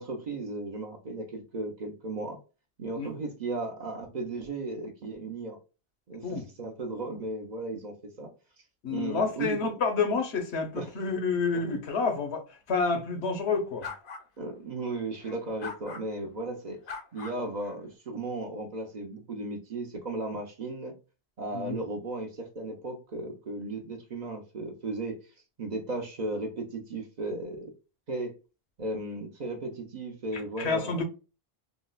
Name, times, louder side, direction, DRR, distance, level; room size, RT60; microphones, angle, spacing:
voice 1, 0.0-2.4 2.8-5.6 6.1-8.3 8.9-9.6 10.7-10.9 14.4-16.8 17.1-20.9 21.4-25.2 25.6-27.7 28.1-28.3 28.8-31.0, right 2 dB, 50° right, 0.6 m, -35 dB
voice 2, 8.8-13.9 21.5-21.8 30.3-31.0, left 4 dB, 80° left, 1.1 m, -29 dB
sound 1, 13.8-14.3 15.2-16.0 16.8-17.8, left 5 dB, 60° left, 0.7 m, -41 dB
3.8 x 2.1 x 2.3 m
omnidirectional pair, 1.1 m